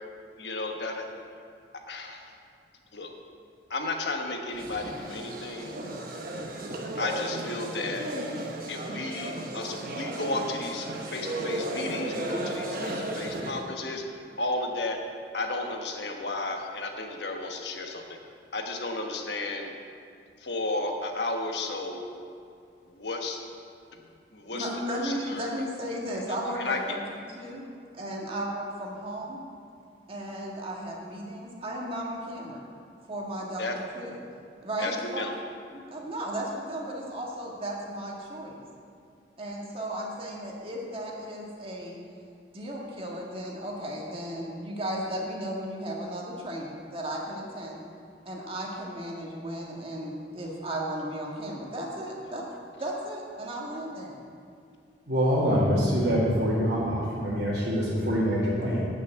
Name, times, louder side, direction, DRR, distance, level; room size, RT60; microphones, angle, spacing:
voice 1, 0.4-1.1 1.9-2.3 2.9-3.1 3.7-5.7 7.0-8.0 8.7-14.0 14.4-15.0 15.3-18.0 18.5-19.7 20.4-22.1 22.9-23.4 24.3-24.7 25.0-25.5 26.1-26.2 26.6-26.8 33.6-33.7 34.8-35.3, left 2 dB, 75° left, 3 dB, 1.2 m, -33 dB
sound 1, 4.5-13.7, right 1 dB, 55° right, 1.1 m, -35 dB
voice 2, 24.5-27.6 27.9-29.4 30.1-32.6 33.1-34.2 34.6-35.3 35.7-38.6 39.4-42.0 42.5-47.8 48.2-52.5 52.8-54.2, right 1 dB, 35° right, -2 dB, 1.7 m, -35 dB
voice 3, 55.1-58.8, equal, 70° right, -9 dB, 2.2 m, -25 dB
8.9 x 6.2 x 8.0 m, 2.4 s
head